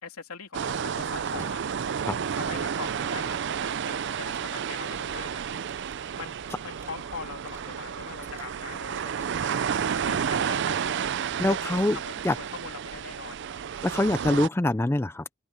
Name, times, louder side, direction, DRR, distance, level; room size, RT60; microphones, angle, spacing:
voice 1, 0.0-1.6 2.4-5.4 6.2-6.3 6.6-9.7 10.0-10.8 11.5-13.5, left 4 dB, 85° left, 3.3 m, -41 dB
sound 1, 0.5-14.5, right 7 dB, 55° right, 0.4 m, -31 dB
sound 2, 1.4-2.7 3.0-3.2 3.5-6.0 6.3-9.4 9.6-10.6 10.9-11.2 11.7-11.9, right 2 dB, 10° right, 5.9 m, -56 dB
voice 2, 11.4-12.0 12.2-12.4 13.8-15.2, left 1 dB, 10° left, 0.4 m, -24 dB
head